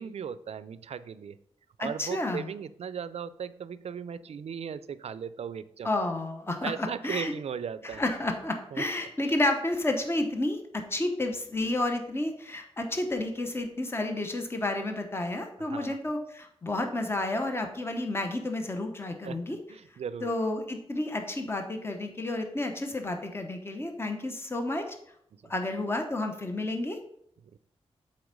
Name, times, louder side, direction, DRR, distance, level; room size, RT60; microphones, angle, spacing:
voice 1, 0.0-1.4 1.8-5.9 6.6-8.0 8.7-8.8 15.6-16.0 19.2-19.4 19.7-20.3 25.4-25.5 27.5-27.6, right 7 dB, 70° right, 15 dB, 0.4 m, -37 dB
voice 2, 1.8-2.5 5.8-7.3 7.8-19.6 20.2-25.0 25.5-27.0, left 2 dB, 20° left, 5 dB, 0.9 m, -31 dB
7.8 x 4.4 x 5.2 m, 0.72 s
wide cardioid pair, 130°, 11 cm